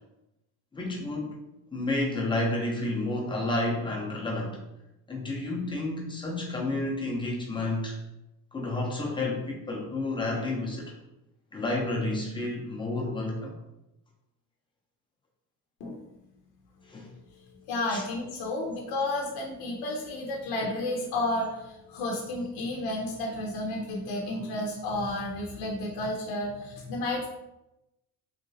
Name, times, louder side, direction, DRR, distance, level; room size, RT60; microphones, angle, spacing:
voice 1, 0.7-1.4 1.7-4.6 5.1-8.0 8.5-10.9 11.5-13.5 16.8-17.1 17.9-18.0, left 2 dB, 15° left, -2 dB, 0.6 m, -30 dB
voice 2, 17.7-27.3, left 1 dB, 75° left, 0 dB, 0.6 m, -32 dB
3.2 x 2.8 x 2.7 m, 0.92 s
cardioid pair, 140°, 38 cm